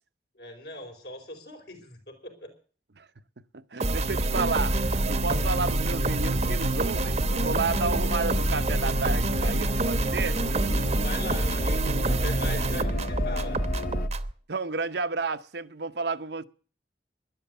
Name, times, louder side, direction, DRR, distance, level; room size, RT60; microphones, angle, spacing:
voice 1, 0.3-2.5 11.0-13.6, left 1 dB, 70° left, 4.8 m, -40 dB
voice 2, 3.4-10.4 14.5-16.4, right 4 dB, 70° right, 0.9 m, -31 dB
sound 1, 3.8-14.3, right 2 dB, 40° right, 0.9 m, -27 dB
sound 2, 3.9-14.1, left 1 dB, 50° left, 0.9 m, -32 dB
12.5 x 11.5 x 8.1 m
head